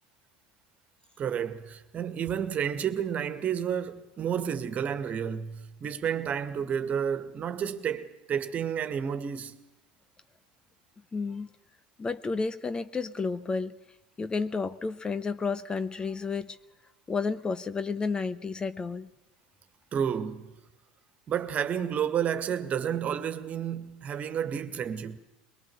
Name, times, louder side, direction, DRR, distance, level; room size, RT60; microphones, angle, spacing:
voice 1, 1.2-9.6 19.9-20.5 21.3-25.2, right 8 dB, 35° right, 2.0 m, -31 dB
voice 2, 11.1-11.5 12.0-13.8 14.2-16.6 17.1-19.1, left 4 dB, 20° left, 0.9 m, -31 dB
23.0 x 22.0 x 7.9 m
hypercardioid pair, 75°, 4 cm